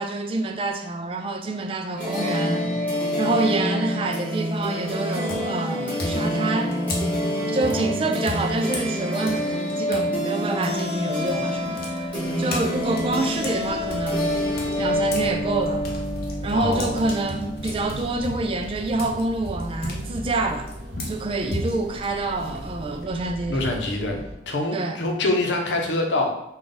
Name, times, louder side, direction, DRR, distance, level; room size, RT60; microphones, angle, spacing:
voice 1, 0.0-2.8 3.2-6.8 7.5-12.1 12.4-14.4 14.8-15.8 16.4-20.7 21.1-23.6 24.7-25.0, right 2 dB, 30° right, 0.3 m, -27 dB
sound 1, 2.0-18.6, equal, 10° left, 1.1 m, -27 dB
sound 2, 4.4-4.7 5.3-10.1 10.4-15.3 15.6-23.0, left 1 dB, 55° left, 0.6 m, -36 dB
sound 3, 11.7-24.4, equal, 60° right, 0.8 m, -38 dB
voice 2, 16.5-17.0 23.5-26.3, left 2 dB, 90° left, 0.7 m, -25 dB
3.7 x 2.4 x 3.8 m
head